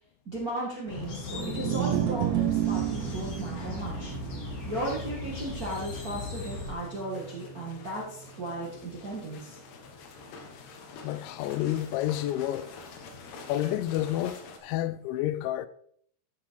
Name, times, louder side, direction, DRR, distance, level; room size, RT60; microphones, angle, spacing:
voice 1, 0.2-4.1 4.6-9.6, right 1 dB, 55° right, 1.0 m, -36 dB
sound 1, 0.9-6.7, left 4 dB, 55° left, 4.6 m, -38 dB
sound 2, 1.3-7.6, right 14 dB, 80° right, 2.8 m, -32 dB
sound 3, 2.4-14.6, left 4 dB, 70° left, 3.3 m, -48 dB
voice 2, 11.0-12.7 13.5-15.7, left 13 dB, 90° left, 3.0 m, -30 dB
13.0 x 5.9 x 4.8 m
omnidirectional pair, 5.2 m